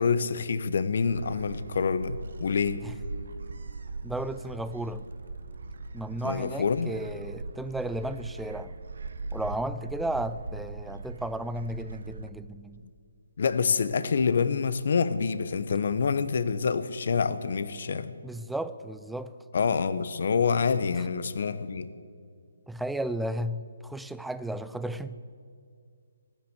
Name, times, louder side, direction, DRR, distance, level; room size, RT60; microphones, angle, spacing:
voice 1, 0.0-2.9 6.2-6.9 13.4-18.1 19.5-21.9, left 5 dB, 60° left, 14 dB, 0.9 m, -27 dB
Gull seagull, 1.1-12.3, right 3 dB, 65° right, 1.0 m, -40 dB
voice 2, 4.0-5.0 5.9-8.7 9.3-12.8 18.2-19.4 22.7-25.2, right 1 dB, ahead, 13 dB, 0.4 m, -34 dB
16.0 x 10.5 x 8.1 m, 2.3 s
figure-of-eight pair, 150°, 0 cm